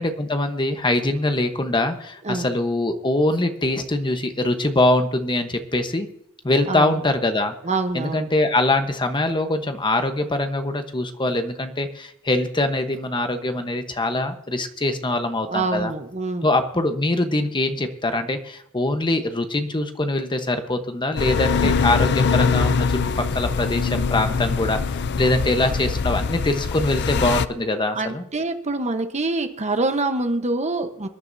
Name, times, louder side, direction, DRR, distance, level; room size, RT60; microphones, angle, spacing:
voice 1, 0.0-6.1 6.4-7.5 7.9-15.9 16.4-28.2, left 2 dB, 20° left, 7 dB, 1.0 m, -23 dB
voice 2, 6.7-7.0 7.6-8.3 15.5-16.5 21.6-21.7 27.9-31.1, right 2 dB, 30° right, 7 dB, 1.0 m, -25 dB
sound 1, 21.2-27.5, left 5 dB, 50° left, 0.5 m, -23 dB
25.0 x 10.5 x 2.7 m, 0.74 s
head